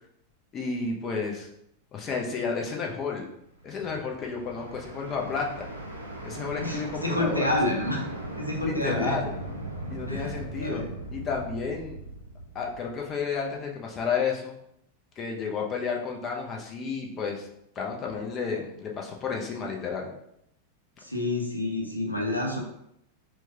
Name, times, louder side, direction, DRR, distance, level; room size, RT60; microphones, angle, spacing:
voice 1, 0.5-1.5 1.9-3.3 3.6-5.7 6.2-7.5 8.6-9.3 9.9-10.8 11.1-12.0 12.5-14.5 15.2-17.5 17.8-20.1, left 5 dB, 30° left, 0 dB, 0.6 m, -31 dB
sound 1, 3.6-13.5, right 1 dB, 85° right, 0.6 m, -39 dB
voice 2, 6.6-8.1 8.4-9.2 10.1-10.9 21.0-22.6, left 1 dB, 85° left, 1 dB, 0.7 m, -28 dB
4.5 x 2.3 x 2.8 m, 0.75 s
figure-of-eight pair, 90°, 0 cm